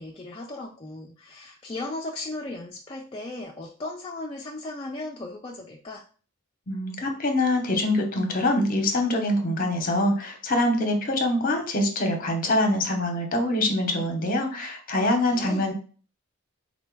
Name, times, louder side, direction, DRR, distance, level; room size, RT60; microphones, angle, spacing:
voice 1, 0.0-6.0 15.0-15.7, left 2 dB, 25° left, 0 dB, 0.3 m, -36 dB
voice 2, 6.7-15.7, left 1 dB, 40° left, 4 dB, 0.8 m, -24 dB
4.2 x 2.2 x 4.5 m, 0.41 s
head